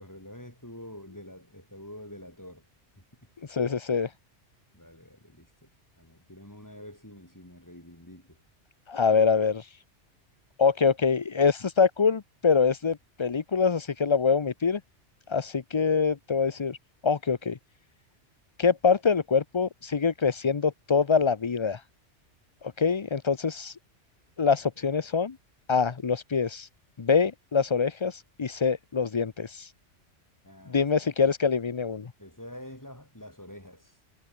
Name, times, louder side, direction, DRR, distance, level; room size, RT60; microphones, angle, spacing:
voice 1, 0.0-2.7 4.7-5.7 6.0-8.4 30.4-30.9 32.2-34.0, left 1 dB, 15° left, 5.0 m, -46 dB
voice 2, 3.4-4.1 8.9-9.8 10.6-14.8 15.3-16.8 17.0-17.6 18.6-21.8 22.6-23.8 24.4-25.4 25.7-26.7 27.0-29.7 30.7-32.1, left 5 dB, 30° left, 0.5 m, -25 dB
omnidirectional pair, 1.2 m